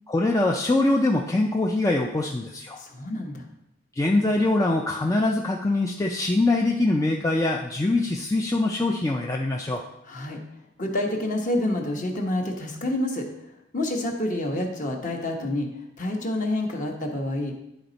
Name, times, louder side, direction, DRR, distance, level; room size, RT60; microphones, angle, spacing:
voice 1, 0.1-2.8 3.9-9.8, left 2 dB, 15° left, 0 dB, 0.4 m, -23 dB
voice 2, 2.7-3.5 10.1-10.4 10.8-13.3 13.7-15.7 16.0-17.5, left 1 dB, 40° left, 2 dB, 1.1 m, -28 dB
10.5 x 4.2 x 4.0 m, 0.84 s
head